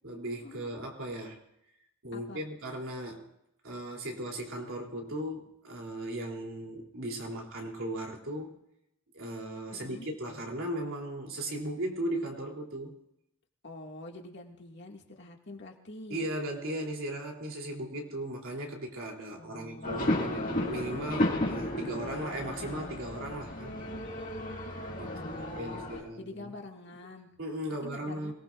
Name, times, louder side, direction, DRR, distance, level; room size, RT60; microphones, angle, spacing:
voice 1, 0.0-1.4 2.0-3.3 3.6-8.5 9.1-13.0 16.1-23.8 25.0-26.5 27.4-28.3, right 1 dB, 80° right, 0 dB, 3.2 m, -37 dB
voice 2, 2.1-2.4 9.7-10.1 13.6-16.2 19.4-20.4 25.0-27.3 27.8-28.3, left 2 dB, 60° left, 1 dB, 2.1 m, -46 dB
sound 1, 19.8-26.0, left 1 dB, 45° left, 2.2 m, -33 dB
26.0 x 19.0 x 2.5 m, 0.82 s
head